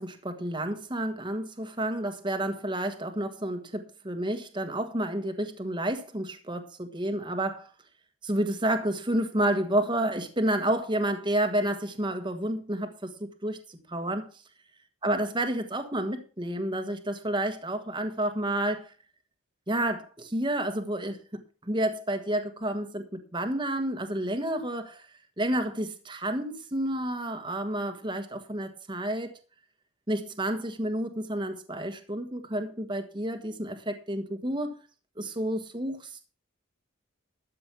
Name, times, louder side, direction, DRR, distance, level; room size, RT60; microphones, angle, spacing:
voice 1, 0.0-7.7 8.2-14.3 15.0-18.9 19.7-25.0 25.4-29.4 30.1-34.7 35.2-36.3, right 1 dB, 20° right, 1.4 m, -30 dB
13.0 x 7.6 x 5.8 m
head